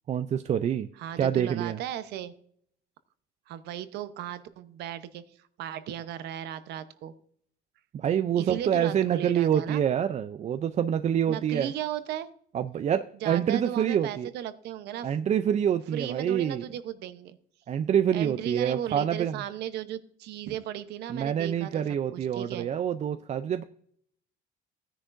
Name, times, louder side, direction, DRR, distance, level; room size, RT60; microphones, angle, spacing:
voice 1, 0.1-0.9 1.2-1.8 7.9-11.7 12.5-14.3 15.0-16.6 17.7-19.4 21.1-23.6, right 9 dB, 40° right, 10 dB, 0.5 m, -26 dB
voice 2, 1.0-2.3 3.5-5.2 5.6-7.1 8.4-9.8 11.3-12.3 13.2-15.1 15.9-17.4 18.1-21.8 22.1-22.7, right 11 dB, 80° right, 12 dB, 0.9 m, -36 dB
15.5 x 10.0 x 2.6 m, 0.64 s
cardioid pair, 110°, 17 cm